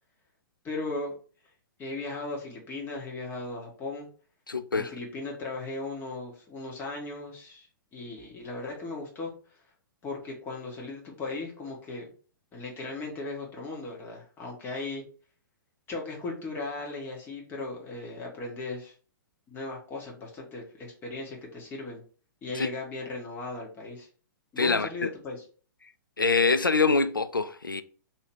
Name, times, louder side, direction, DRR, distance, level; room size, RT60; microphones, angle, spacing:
voice 1, 0.6-1.1 1.8-4.1 4.7-7.7 7.9-9.3 10.0-12.1 12.5-15.0 15.9-18.9 19.5-22.0 22.4-24.1 24.5-25.4, left 3 dB, 20° left, 1.2 m, -37 dB
voice 2, 4.5-4.9 22.5-22.7 24.6-25.1 26.2-27.8, left 4 dB, 85° left, 0.4 m, -25 dB
3.1 x 2.8 x 4.4 m
figure-of-eight pair, 110°, 11 cm